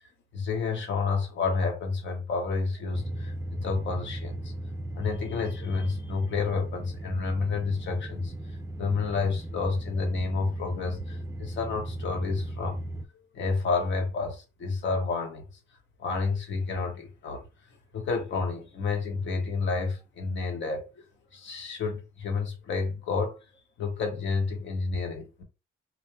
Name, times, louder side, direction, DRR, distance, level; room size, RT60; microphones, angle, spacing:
voice 1, 0.3-4.5 4.9-8.3 8.8-12.8 13.3-15.4 16.0-17.4 17.9-21.0 21.3-23.4 23.8-25.4, left 4 dB, 70° left, 1.3 m, -30 dB
sound 1, 2.9-13.1, right 1 dB, 15° right, 0.4 m, -37 dB
4.4 x 3.0 x 2.3 m
cardioid pair, 90°, 20 cm